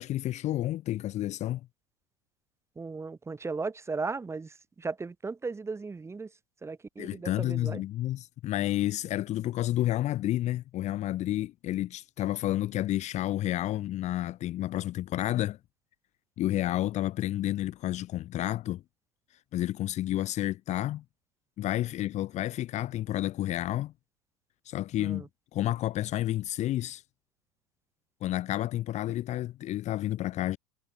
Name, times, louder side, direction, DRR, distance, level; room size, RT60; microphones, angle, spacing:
voice 1, 0.0-1.7 7.0-15.6 16.4-18.8 19.5-21.0 21.6-23.9 24.6-27.0 28.2-30.6, left 14 dB, 40° left, 1.0 m, -30 dB
voice 2, 2.7-6.3 6.6-7.8 25.0-25.3, right 4 dB, 15° right, 3.3 m, -36 dB
supercardioid pair, 105°, 18 cm